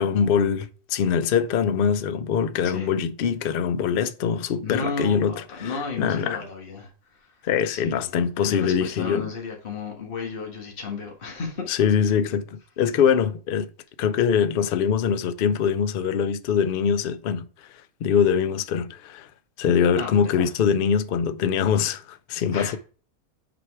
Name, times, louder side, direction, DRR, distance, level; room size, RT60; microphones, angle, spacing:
voice 1, 0.0-6.4 7.4-9.3 11.7-13.7 14.0-17.7 18.0-19.3 19.6-22.8, left 7 dB, 85° left, 0.4 m, -23 dB
voice 2, 2.6-2.9 4.6-6.9 7.7-8.1 8.4-11.7 20.0-20.5 22.5-22.8, left 4 dB, 40° left, 1.6 m, -33 dB
6.2 x 4.6 x 4.7 m
omnidirectional pair, 1.5 m